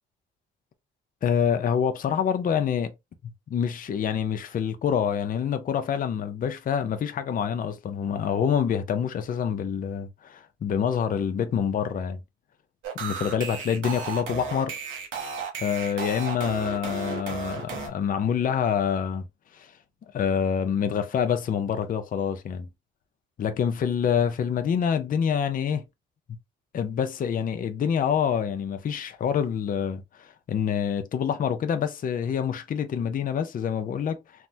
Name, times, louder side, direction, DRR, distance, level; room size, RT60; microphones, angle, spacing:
voice 1, 1.2-2.9 3.5-12.2 13.0-14.7 15.6-19.3 19.5-19.7 20.1-22.7 23.4-25.8 26.7-34.2, left 7 dB, 45° left, 0.5 m, -26 dB
sound 1, 12.8-17.9, right 6 dB, 80° right, 1.0 m, -34 dB
3.3 x 2.1 x 2.6 m
cardioid pair, 90°, 20 cm